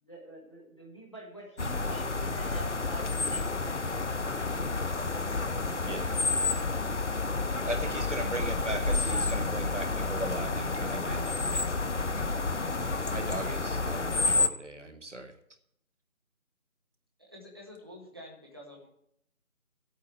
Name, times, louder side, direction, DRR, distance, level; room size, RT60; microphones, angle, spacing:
voice 1, 0.0-5.4, right 1 dB, 20° left, -2 dB, 1.3 m, -48 dB
sound 1, 1.6-14.5, left 3 dB, 55° left, 0.7 m, -30 dB
voice 2, 7.6-11.6 13.1-15.3, right 2 dB, 55° right, 7 dB, 1.4 m, -38 dB
voice 3, 17.2-18.9, left 1 dB, 15° right, -2 dB, 1.4 m, -48 dB
15.0 x 8.5 x 4.5 m, 0.73 s
figure-of-eight pair, 165°, 42 cm